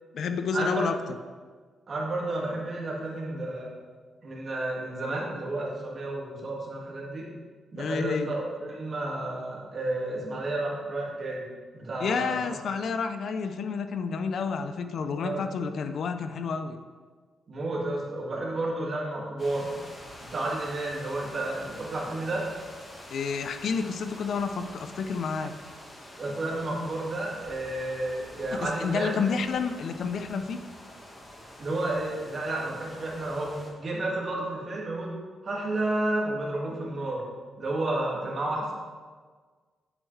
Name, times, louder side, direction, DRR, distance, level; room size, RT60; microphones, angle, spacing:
voice 1, 0.1-0.9 7.8-8.3 12.0-16.8 23.1-25.5 28.5-30.6, left 5 dB, 65° left, 8 dB, 0.5 m, -30 dB
voice 2, 1.9-3.7 4.2-7.3 7.7-11.4 11.7-12.4 15.1-15.4 17.5-19.7 20.2-22.5 26.2-29.1 31.6-35.1 35.4-37.2 37.6-38.7, right 2 dB, 40° right, -3 dB, 1.9 m, -31 dB
sound 1, 19.4-33.7, left 1 dB, 30° left, 1.5 m, -47 dB
8.2 x 7.1 x 3.2 m, 1.5 s
cardioid pair, 125°, 0 cm